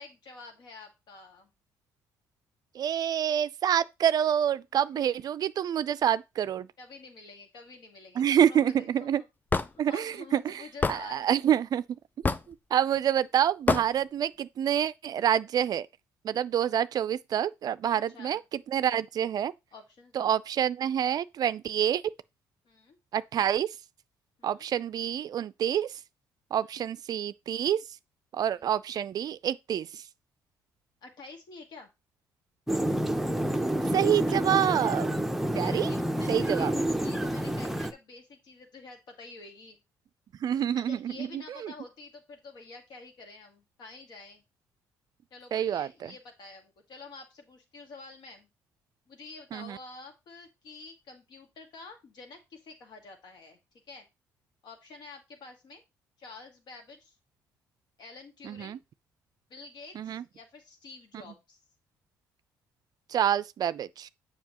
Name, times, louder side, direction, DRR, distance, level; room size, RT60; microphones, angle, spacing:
voice 1, 0.0-1.5 4.9-5.3 6.8-9.1 9.9-11.3 17.9-18.4 19.7-20.3 22.7-23.0 24.4-24.6 26.8-26.9 28.5-28.8 31.0-31.9 35.6-39.8 40.8-44.4 45.3-48.5 49.1-53.6 53.9-54.1 54.6-55.8 56.2-57.2 58.0-58.8 59.5-61.6, left 3 dB, 65° left, 1.9 m, -48 dB
voice 2, 2.7-6.7 8.2-9.2 9.8-10.6 10.9-11.8 12.5-15.9 16.2-19.5 20.1-22.0 23.1-23.7 24.4-26.0 26.5-27.8 28.3-30.0 33.9-35.1 35.6-35.9 36.3-36.7 40.4-41.7 45.5-46.1 49.5-49.8 58.4-58.8 59.9-60.2 63.1-64.1, right 9 dB, 55° right, 0.4 m, -27 dB
Hammer / Wood, 9.5-9.7 10.8-11.0 12.2-12.5 13.7-13.9, left 4 dB, 25° left, 0.4 m, -25 dB
sound 1, 32.7-37.9, right 1 dB, 5° right, 0.7 m, -28 dB
7.2 x 5.4 x 2.9 m
supercardioid pair, 70°, 8 cm